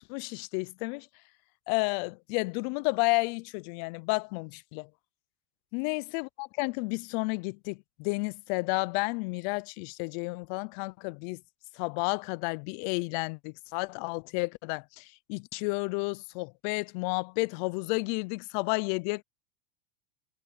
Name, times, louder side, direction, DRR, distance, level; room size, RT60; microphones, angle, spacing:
voice 1, 0.1-1.1 1.7-4.9 5.7-11.4 11.8-19.2, left 29 dB, 55° left, 0.6 m, -31 dB
supercardioid pair, 130°, 29 cm